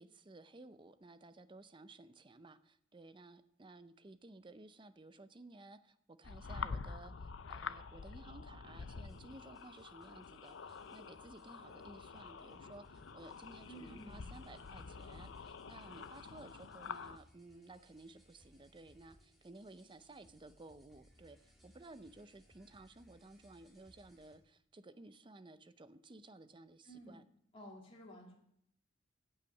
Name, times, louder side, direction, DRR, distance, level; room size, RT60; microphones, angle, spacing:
voice 1, 0.0-27.2, right 2 dB, 25° right, 12 dB, 0.5 m, -56 dB
sound 1, 6.2-17.2, left 5 dB, 70° left, 0.5 m, -47 dB
sound 2, 9.0-24.4, equal, ahead, 2.0 m, -67 dB
voice 2, 13.7-14.6 26.8-27.2 27.5-28.4, right 1 dB, 30° left, -2 dB, 2.6 m, -54 dB
15.5 x 5.7 x 7.1 m, 0.71 s
head